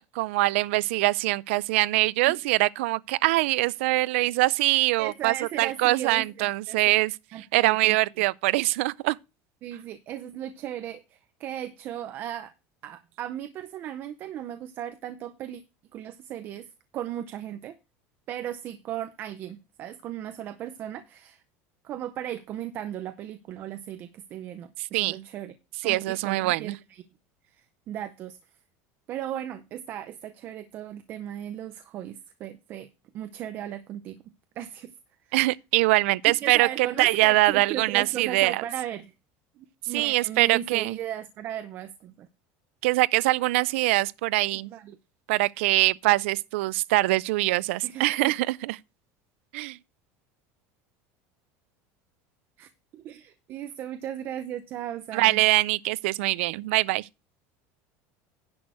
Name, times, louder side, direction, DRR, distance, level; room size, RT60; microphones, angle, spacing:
voice 1, 0.0-9.2 24.9-25.2 25.8-26.8 35.3-38.6 39.9-41.0 42.8-44.7 45.3-48.8 49.5-49.8 55.1-57.1, right 20 dB, 90° right, 0.4 m, -23 dB
voice 2, 5.0-6.8 7.3-8.0 9.6-12.5 12.8-15.6 15.9-16.7 16.9-17.8 18.3-21.4 21.8-25.5 25.8-27.0 27.5-28.4 29.1-32.9 33.1-34.2 34.6-34.9 35.3-35.4 36.3-39.1 39.6-42.3 44.7-45.0 47.8-48.3 52.6-55.4, right 11 dB, 30° right, 0.6 m, -36 dB
10.5 x 6.2 x 4.7 m
cardioid pair, 175°, 7 cm